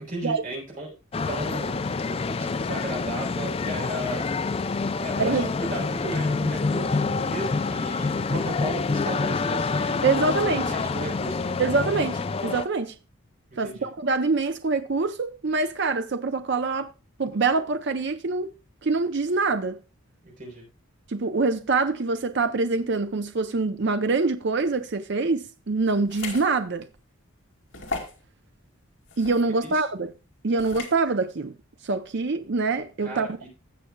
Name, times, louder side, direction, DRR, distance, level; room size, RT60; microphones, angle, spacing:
voice 1, 0.0-4.3 5.0-11.6 13.6-13.9 20.2-20.7 29.6-29.8 33.0-33.5, right 1 dB, 40° right, 3.8 m, -35 dB
sound 1, 1.1-12.7, left 4 dB, 25° left, 0.3 m, -27 dB
voice 2, 5.2-5.5 10.0-10.7 11.6-12.9 13.6-16.9 17.2-18.5 18.8-19.8 21.1-26.9 29.2-30.1 30.4-31.5 31.8-33.3, right 3 dB, 55° right, 0.6 m, -25 dB
sound 2, 26.1-26.5 27.0-27.1 27.7-28.2 29.1-29.4 30.6-31.0, left 3 dB, 60° left, 2.4 m, -35 dB
16.5 x 6.7 x 2.3 m
head